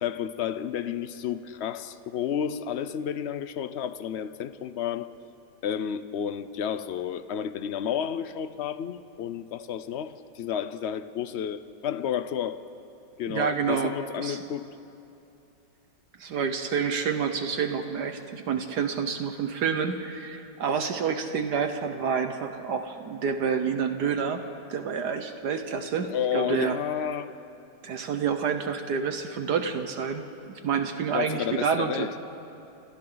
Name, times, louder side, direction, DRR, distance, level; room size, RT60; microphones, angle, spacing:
voice 1, 0.0-5.1 5.6-12.6 13.2-14.7 26.1-27.3 31.1-32.1, left 9 dB, 80° left, 12 dB, 0.6 m, -31 dB
voice 2, 13.3-13.9 14.2-14.4 16.2-24.4 24.7-26.8 27.8-32.1, right 6 dB, 65° right, 7 dB, 1.5 m, -28 dB
28.5 x 27.5 x 4.0 m, 2.8 s
omnidirectional pair, 1.9 m